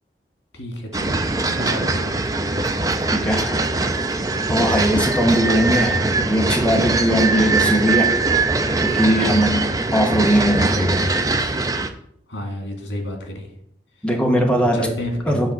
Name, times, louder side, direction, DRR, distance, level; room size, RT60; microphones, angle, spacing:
voice 1, 0.5-1.2 1.5-2.3 12.3-13.6 13.9-14.1 14.6-15.5, equal, 80° left, 2 dB, 2.0 m, -30 dB
sound 1, 0.9-11.9, right 3 dB, 20° right, 0.5 m, -21 dB
voice 2, 3.1-3.6 4.5-8.1 8.8-9.6 9.9-11.1 14.0-14.8 15.3-15.5, equal, 5° left, 1 dB, 1.0 m, -19 dB
8.1 x 3.7 x 6.0 m, 0.70 s
head